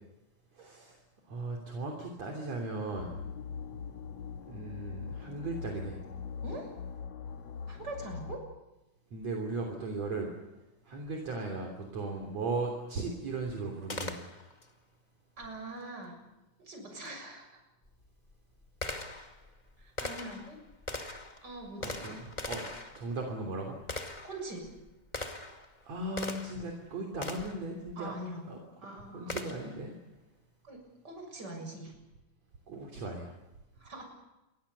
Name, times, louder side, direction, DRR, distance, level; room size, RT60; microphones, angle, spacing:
voice 1, 0.5-1.0 1.3-3.1 4.5-6.0 9.1-10.3 10.9-14.2 21.8-22.2 22.5-22.7 22.9-23.8 25.9-28.1 28.5-28.6 29.1-29.9 32.7-33.3, right 3 dB, 55° right, 1 dB, 4.4 m, -37 dB
sound 1, 3.0-8.4, left 6 dB, 60° left, 2.8 m, -42 dB
voice 2, 7.7-8.4 15.4-16.2 16.6-17.6 18.9-19.2 19.8-20.6 21.4-22.2 24.2-24.7 28.0-29.7 30.6-30.8 31.0-32.0 33.8-34.0, right 2 dB, 30° right, 3 dB, 7.2 m, -43 dB
Gunshot gunfire, 13.9-14.7 17.0-17.1 17.9-26.7 27.2-27.7 29.3-29.8, left 2 dB, 20° left, 1.5 m, -41 dB
29.0 x 23.0 x 7.0 m, 0.98 s
omnidirectional pair, 3.7 m